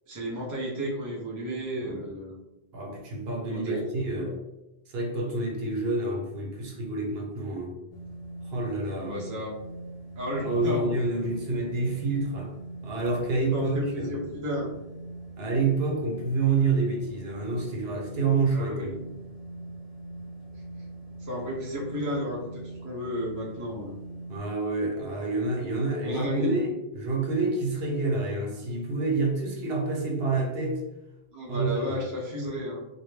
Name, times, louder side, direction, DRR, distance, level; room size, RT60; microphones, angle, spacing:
voice 1, 0.1-2.4 3.5-3.8 4.2-4.3 9.0-9.5 10.2-10.9 13.5-14.7 18.5-19.0 21.2-24.0 26.0-26.6 31.3-32.8, equal, 25° right, -3 dB, 0.4 m, -32 dB
voice 2, 2.7-4.4 4.9-7.8 8.4-9.2 10.4-12.5 12.8-14.2 15.4-19.0 24.3-30.8 31.5-32.0, right 3 dB, 70° right, -1 dB, 0.8 m, -28 dB
sound 1, 7.9-24.4, right 2 dB, 40° left, 0.4 m, -42 dB
2.2 x 2.0 x 3.1 m, 0.95 s
omnidirectional pair, 1.1 m